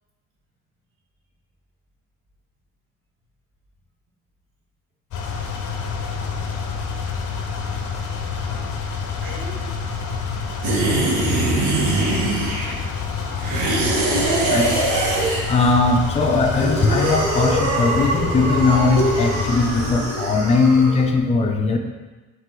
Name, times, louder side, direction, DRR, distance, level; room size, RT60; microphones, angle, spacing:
sound 1, 5.1-20.2, left 5 dB, 75° left, 0.7 m, -28 dB
voice 1, 9.2-9.7 12.0-12.1 13.1-14.7, right 1 dB, 45° right, -4 dB, 1.2 m, -39 dB
sound 2, 10.6-12.9 13.4-15.7 16.3-21.0, right 2 dB, 80° right, 0.9 m, -23 dB
voice 2, 15.5-21.8, left 3 dB, 20° left, 2 dB, 0.4 m, -19 dB
4.4 x 2.8 x 3.7 m, 1.2 s
cardioid pair, 90°, 30 cm